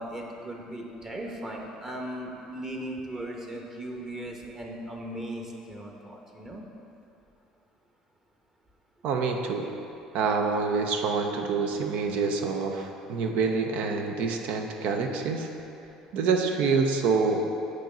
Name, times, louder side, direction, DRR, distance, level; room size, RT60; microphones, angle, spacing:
voice 1, 0.0-6.6, right 1 dB, 25° right, 0 dB, 1.0 m, -37 dB
voice 2, 9.0-9.7 10.1-15.5 16.1-17.4, right 4 dB, 65° right, 4 dB, 0.6 m, -26 dB
8.4 x 3.1 x 4.9 m, 2.9 s
hypercardioid pair, 70°, 2 cm